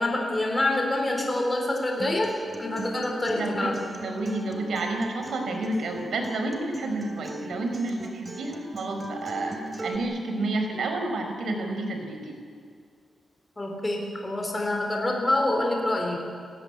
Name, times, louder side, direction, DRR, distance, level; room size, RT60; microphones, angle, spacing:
voice 1, 0.0-3.9 13.6-16.2, left 1 dB, 15° left, 1 dB, 4.1 m, -26 dB
Acoustic guitar, 2.0-10.0, right 1 dB, 20° right, 2.6 m, -38 dB
voice 2, 3.3-9.6 9.8-12.4, right 2 dB, 75° right, 4 dB, 4.8 m, -30 dB
30.0 x 15.5 x 9.8 m, 2.3 s
wide cardioid pair, 155°, 0 cm